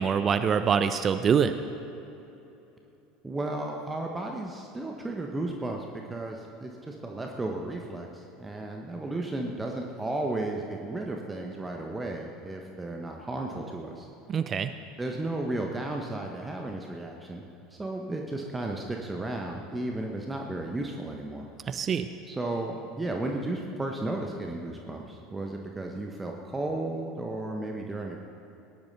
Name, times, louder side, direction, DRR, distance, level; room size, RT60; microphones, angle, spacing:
voice 1, 0.0-1.5 14.3-14.7 21.7-22.1, right 7 dB, 35° right, 10 dB, 0.6 m, -24 dB
voice 2, 3.2-14.1 15.0-17.4 17.7-21.5 22.3-28.2, right 2 dB, 15° right, 1 dB, 1.3 m, -34 dB
19.0 x 10.5 x 4.2 m, 3.0 s
figure-of-eight pair, 70°, 0 cm